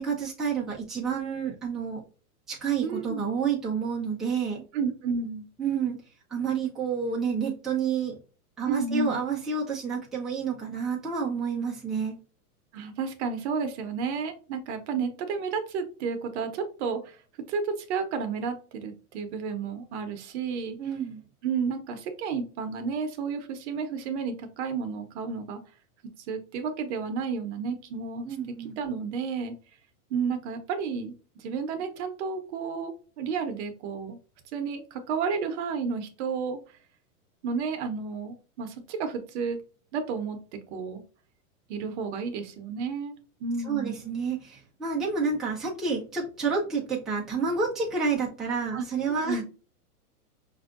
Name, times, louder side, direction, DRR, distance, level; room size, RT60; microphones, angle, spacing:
voice 1, 0.0-2.0 2.5-4.6 5.6-6.0 6.3-8.2 8.6-12.2 20.8-21.2 28.2-28.8 43.6-49.4, right 5 dB, ahead, -6 dB, 0.6 m, -29 dB
voice 2, 2.8-3.2 4.7-5.5 8.6-9.2 12.7-17.2 17.5-20.8 21.4-25.6 26.3-29.5 30.1-34.2 34.5-36.6 37.4-39.6 39.9-40.4 40.7-41.0 41.7-43.1 43.4-44.0 48.7-49.4, right 5 dB, 45° right, 7 dB, 0.9 m, -32 dB
5.5 x 2.7 x 2.5 m, 0.36 s
hypercardioid pair, 135°, 46 cm